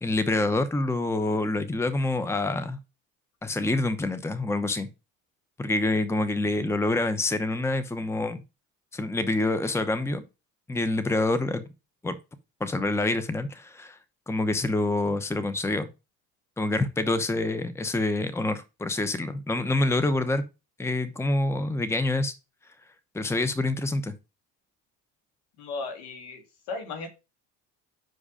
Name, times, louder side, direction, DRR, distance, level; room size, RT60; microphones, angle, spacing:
voice 1, 0.0-2.8 3.4-4.9 5.6-8.4 8.9-10.2 10.7-11.7 12.0-12.2 12.6-14.0 14.3-15.9 16.6-20.4 20.8-22.3 23.1-24.1, left 2 dB, 5° left, 0.9 m, -26 dB
voice 2, 25.6-27.1, left 3 dB, 70° left, 2.1 m, -36 dB
6.2 x 4.9 x 5.0 m
hypercardioid pair, 70°, 40 cm